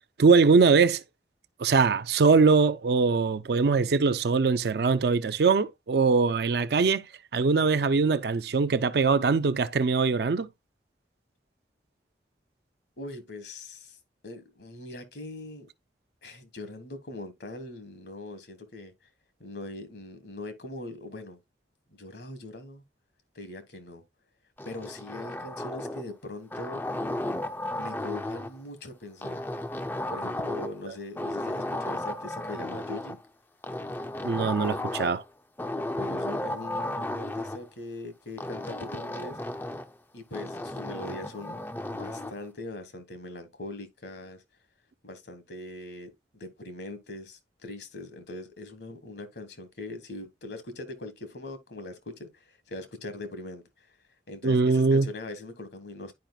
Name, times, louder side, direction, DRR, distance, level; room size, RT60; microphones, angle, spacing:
voice 1, 0.2-1.0 1.6-7.0 7.3-10.5 34.2-35.2 54.4-55.1, right 4 dB, 60° right, 0.4 m, -22 dB
voice 2, 13.0-14.0 14.2-15.7 16.2-18.9 19.4-21.4 21.9-22.8 23.3-24.0 24.6-26.8 27.7-29.4 30.1-33.2 36.0-39.4 40.1-41.6 41.9-44.4 45.0-53.6 54.3-56.1, left 2 dB, 65° left, 1.3 m, -41 dB
sound 1, 24.6-26.1 26.5-28.6 29.2-30.9 31.2-33.2 33.6-35.2 35.6-37.6 38.4-39.9 40.3-42.4, left 1 dB, 10° left, 0.4 m, -34 dB
10.5 x 4.9 x 2.3 m
head